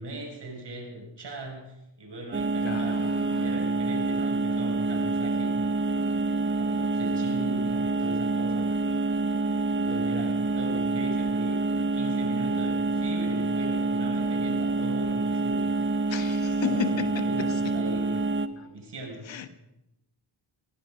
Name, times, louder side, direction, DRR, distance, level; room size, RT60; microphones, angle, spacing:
voice 1, 0.0-3.1 3.4-5.6 5.9-8.7 9.2-11.7 11.9-15.9 16.1-18.2 18.5-19.3, right 1 dB, 55° right, 6.0 m, -39 dB
sound 1, 2.3-18.5, right 3 dB, 25° right, 1.0 m, -27 dB
voice 2, 2.6-3.7 16.1-17.8 18.6-18.7 19.3-19.5, left 8 dB, 65° left, 1.3 m, -34 dB
16.5 x 15.5 x 5.2 m
supercardioid pair, 45°, 49 cm